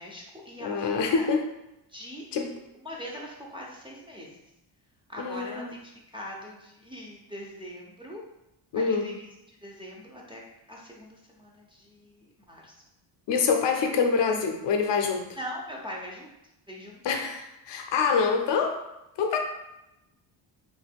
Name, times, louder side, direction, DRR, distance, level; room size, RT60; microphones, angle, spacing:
voice 1, 0.0-1.3 1.9-2.2 2.8-4.5 5.1-8.2 8.7-10.4 10.7-12.8 15.3-16.4 16.7-17.0, equal, 10° right, -3 dB, 0.5 m, -42 dB
voice 2, 0.6-1.5 2.3-2.5 5.2-5.7 8.7-9.1 13.3-15.3 17.0-18.8 19.2-19.4, left 5 dB, 60° left, 4 dB, 0.6 m, -25 dB
3.1 x 2.2 x 3.4 m, 0.89 s
cardioid pair, 100°, 48 cm